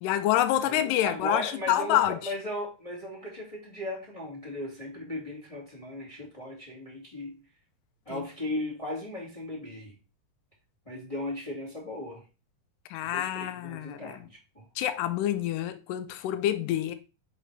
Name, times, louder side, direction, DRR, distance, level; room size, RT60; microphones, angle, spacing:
voice 1, 0.0-2.2 8.1-8.2 12.9-14.2 14.8-17.0, left 12 dB, 80° left, 1.9 m, -27 dB
voice 2, 0.6-7.4 8.0-9.9 10.8-12.2 13.0-14.7, left 1 dB, 20° left, 0.9 m, -37 dB
6.0 x 5.0 x 3.3 m
omnidirectional pair, 4.4 m